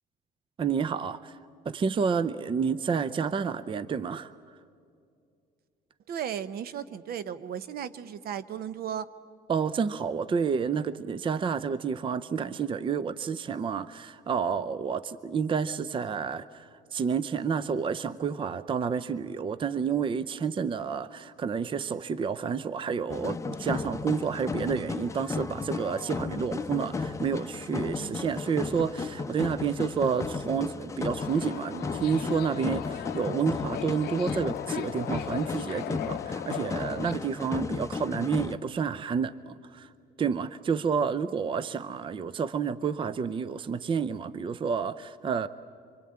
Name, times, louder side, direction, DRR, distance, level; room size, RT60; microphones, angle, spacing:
voice 1, 0.6-1.4 1.7-4.3 9.5-39.9 40.2-45.5, right 6 dB, 30° right, 16 dB, 0.6 m, -30 dB
voice 2, 6.1-9.1 28.0-28.2, right 9 dB, 65° right, 15 dB, 0.9 m, -35 dB
sound 1, 23.1-38.6, left 4 dB, 20° left, 0.8 m, -34 dB
Subway metro underground, 31.2-37.1, left 14 dB, 70° left, 0.6 m, -38 dB
26.0 x 23.5 x 8.7 m, 2.4 s
cardioid pair, 110°, 17 cm